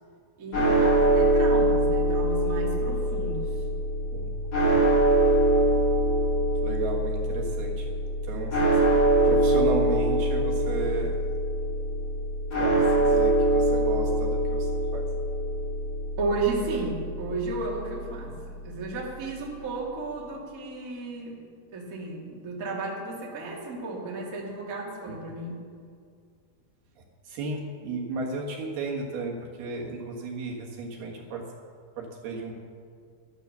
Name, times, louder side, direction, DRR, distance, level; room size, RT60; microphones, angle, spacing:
voice 1, 0.4-3.5 16.2-21.4 21.7-25.6, right 3 dB, 30° right, -3 dB, 1.8 m, -33 dB
sound 1, 0.5-18.8, right 1 dB, 40° left, 5.5 m, -24 dB
voice 2, 6.6-7.9 8.2-8.8 9.2-11.4 12.6-15.1 25.1-25.2 27.0-31.4 32.0-32.5, right 3 dB, 65° right, -1 dB, 3.2 m, -34 dB
12.5 x 12.0 x 6.7 m, 2.2 s
omnidirectional pair, 5.2 m